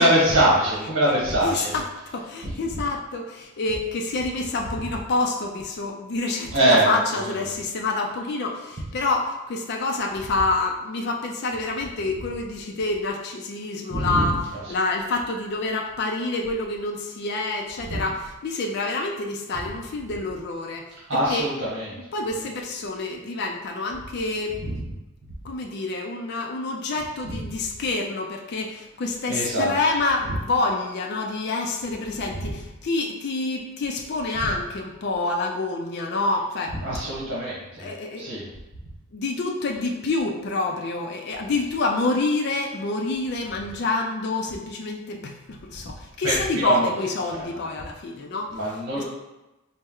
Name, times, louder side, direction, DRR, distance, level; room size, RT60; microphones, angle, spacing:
voice 1, 0.0-1.7 6.5-7.0 13.9-14.4 17.9-18.0 21.1-21.9 24.6-24.8 29.3-29.7 30.3-30.4 32.4-32.5 36.8-37.9 38.2-38.5 46.2-46.9 47.4-47.5 48.5-49.0, right 1 dB, 75° right, -7 dB, 1.1 m, -22 dB
voice 2, 1.4-20.9 21.1-21.5 22.1-24.6 25.4-36.8 37.8-38.4 39.1-48.5 48.9-49.0, left 3 dB, 55° left, 1 dB, 0.4 m, -27 dB
4.2 x 2.1 x 3.6 m, 1.0 s
head